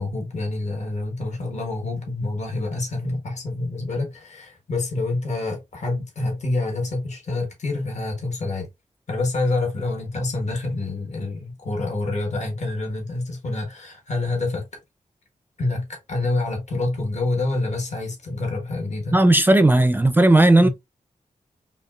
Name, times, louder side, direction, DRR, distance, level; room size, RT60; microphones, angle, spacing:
voice 1, 0.0-8.7 9.1-14.7 15.6-19.2 20.6-20.7, left 2 dB, 55° left, 1.3 m, -27 dB
voice 2, 19.1-20.7, right 2 dB, 15° right, 0.4 m, -15 dB
5.3 x 2.4 x 2.4 m
wide cardioid pair, 100°, 14 cm